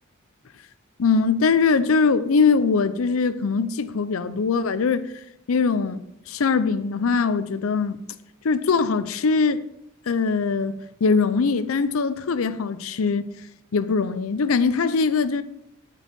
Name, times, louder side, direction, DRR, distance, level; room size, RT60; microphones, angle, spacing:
voice 1, 1.0-5.1 5.5-8.0 8.4-9.6 10.1-13.2 13.7-15.4, left 5 dB, 85° left, 0.5 m, -22 dB
12.0 x 4.6 x 5.3 m
head